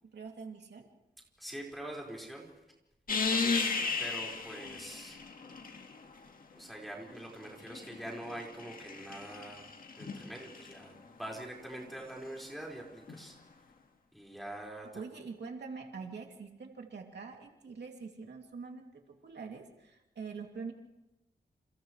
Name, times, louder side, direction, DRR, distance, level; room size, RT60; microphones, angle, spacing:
voice 1, 0.1-0.9 14.8-20.7, right 5 dB, 80° right, 2 dB, 2.7 m, -44 dB
voice 2, 1.4-2.6 3.3-5.2 6.5-13.4 14.1-14.9, right 1 dB, ahead, -2 dB, 5.0 m, -44 dB
sound 1, 3.1-6.2 7.3-10.7 13.1-13.2, left 4 dB, 55° left, 1.8 m, -35 dB
29.0 x 29.0 x 3.2 m, 0.94 s
wide cardioid pair, 180°, 17 cm